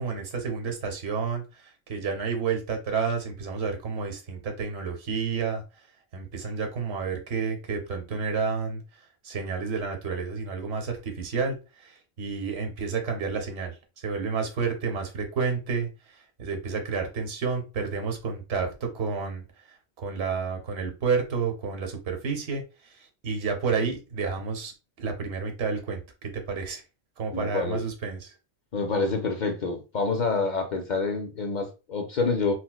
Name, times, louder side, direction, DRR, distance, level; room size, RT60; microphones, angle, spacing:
voice 1, 0.0-5.6 6.1-8.8 9.2-19.4 20.0-24.7 25.0-26.8 27.2-28.3, right 5 dB, 70° right, 5 dB, 1.0 m, -30 dB
voice 2, 27.3-27.8 28.7-32.5, left 4 dB, 55° left, 4 dB, 0.6 m, -27 dB
4.2 x 2.1 x 2.2 m, 0.30 s
omnidirectional pair, 1.1 m